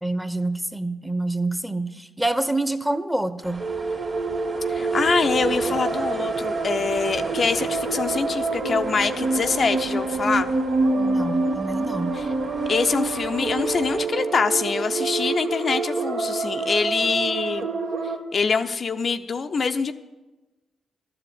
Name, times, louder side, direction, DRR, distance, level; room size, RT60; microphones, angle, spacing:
voice 1, 0.0-3.6 11.0-12.1, right 2 dB, 5° right, 11 dB, 0.8 m, -27 dB
sound 1, 3.4-14.1, right 2 dB, 45° right, 2.3 m, -37 dB
sound 2, 3.6-18.2, right 3 dB, 75° right, 1.2 m, -26 dB
voice 2, 4.7-10.5 12.1-12.3 12.7-17.7 18.3-19.9, left 5 dB, 55° left, 7 dB, 0.5 m, -24 dB
12.0 x 5.0 x 8.5 m, 1.1 s
hypercardioid pair, 45°, 0 cm